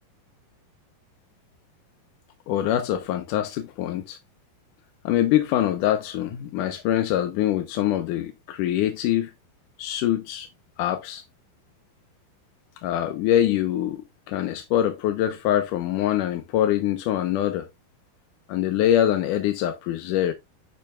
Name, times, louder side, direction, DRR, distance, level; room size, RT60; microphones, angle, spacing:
voice 1, 2.5-4.2 5.0-9.3 9.8-10.5 10.8-11.2 12.8-17.7 18.5-20.3, left 11 dB, 70° left, 2.1 m, -24 dB
10.5 x 5.8 x 2.3 m
omnidirectional pair, 4.4 m